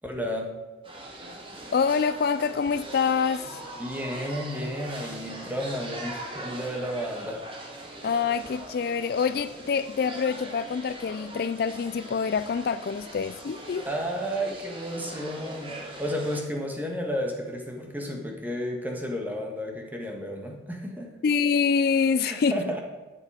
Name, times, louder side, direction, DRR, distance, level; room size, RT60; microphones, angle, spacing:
voice 1, 0.0-0.6 3.8-7.4 13.9-21.1 22.2-22.8, equal, 10° right, 2 dB, 1.6 m, -32 dB
sound 1, 0.8-16.4, right 1 dB, 30° right, 1.7 m, -41 dB
voice 2, 1.7-3.6 8.0-13.9 21.2-22.8, left 6 dB, 55° left, 13 dB, 0.3 m, -26 dB
12.0 x 7.5 x 5.0 m, 1.2 s
head